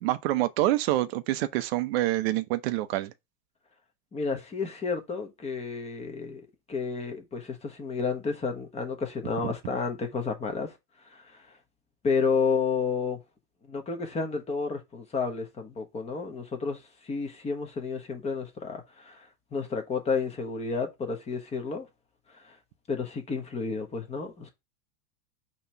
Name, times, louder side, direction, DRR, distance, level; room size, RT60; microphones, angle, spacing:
voice 1, 0.0-3.1 9.4-9.5, right 15 dB, 40° right, 0.7 m, -26 dB
voice 2, 4.1-10.7 11.0-11.4 12.0-13.2 13.7-21.9 22.3-22.5 22.9-24.5, left 5 dB, 15° left, 1.1 m, -31 dB
5.6 x 3.1 x 5.6 m
supercardioid pair, 145°, 47 cm